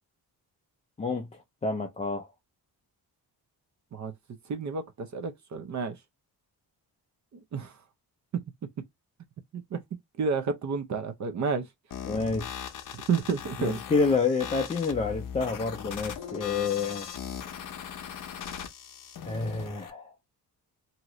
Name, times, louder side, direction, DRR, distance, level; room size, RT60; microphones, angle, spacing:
voice 1, 1.0-2.3 12.1-12.7 13.6-17.1 19.2-20.1, left 4 dB, 20° left, 0.3 m, -29 dB
voice 2, 4.5-6.0 7.5-7.7 8.3-8.4 9.5-9.8 10.2-11.6 13.1-13.8, right 5 dB, 45° right, 0.5 m, -30 dB
sound 1, 11.9-19.9, left 8 dB, 55° left, 0.6 m, -39 dB
2.8 x 2.4 x 2.9 m
wide cardioid pair, 170°, 39 cm